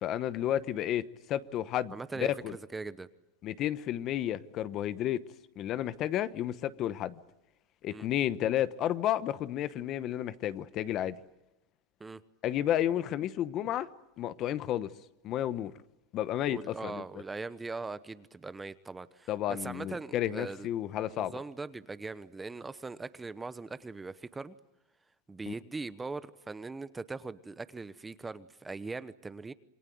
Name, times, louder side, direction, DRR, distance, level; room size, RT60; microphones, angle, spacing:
voice 1, 0.0-2.5 3.4-5.2 5.6-7.1 7.8-11.2 12.4-13.9 14.2-14.9 15.2-15.7 16.1-17.0 19.3-21.4 25.5-25.6, left 11 dB, 40° left, 1.0 m, -32 dB
voice 2, 1.9-3.1 7.9-8.1 12.0-12.2 16.5-20.7 21.1-24.6 25.3-29.5, right 3 dB, 10° right, 1.0 m, -41 dB
27.5 x 21.5 x 9.4 m
supercardioid pair, 140°, 0 cm